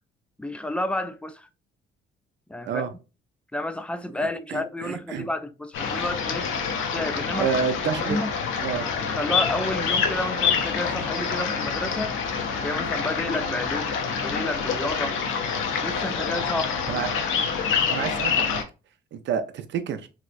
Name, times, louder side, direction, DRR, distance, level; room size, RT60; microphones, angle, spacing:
voice 1, 0.4-1.5 2.5-2.8 3.5-6.5 6.9-7.5 7.9-8.3 9.0-12.2 12.6-15.2 15.8-16.8, left 1 dB, 5° left, 0.3 m, -30 dB
voice 2, 4.5-5.3 7.4-8.2 8.6-8.9 16.9-17.1 17.9-18.6 19.1-20.1, right 7 dB, 65° right, 0.5 m, -28 dB
sound 1, 5.7-18.6, left 6 dB, 90° left, 0.6 m, -27 dB
3.2 x 2.8 x 2.5 m
cardioid pair, 90°, 20 cm